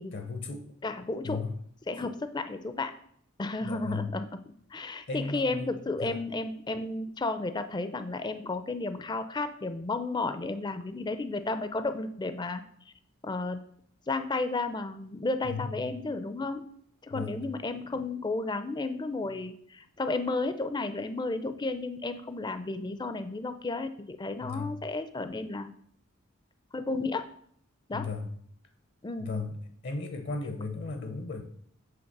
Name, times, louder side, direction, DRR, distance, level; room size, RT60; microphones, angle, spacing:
voice 1, 0.1-0.7 1.2-1.6 3.6-4.1 5.1-5.7 6.0-6.2 15.4-15.9 17.1-17.4 24.4-24.7 27.9-28.3 29.2-29.6 29.8-31.4, left 3 dB, 55° left, 7 dB, 0.7 m, -35 dB
voice 2, 0.8-1.4 1.9-3.0 3.4-4.3 4.7-12.6 13.2-13.6 14.1-16.7 17.0-25.7 26.7-27.3 27.9-28.1 29.0-29.3, left 3 dB, 20° left, 10 dB, 0.4 m, -33 dB
7.9 x 3.5 x 5.9 m, 0.65 s
head